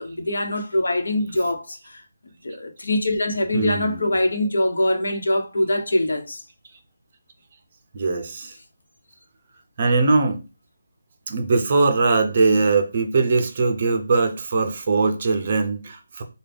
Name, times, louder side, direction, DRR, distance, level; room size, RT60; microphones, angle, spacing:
voice 1, 0.0-2.0 2.4-6.4, left 1 dB, 80° left, 1.0 m, -23 dB
voice 2, 3.5-4.2 7.9-8.5 9.8-10.4 11.3-16.2, right 3 dB, 25° right, 0.5 m, -21 dB
5.0 x 2.3 x 3.4 m
hypercardioid pair, 175°, 0 cm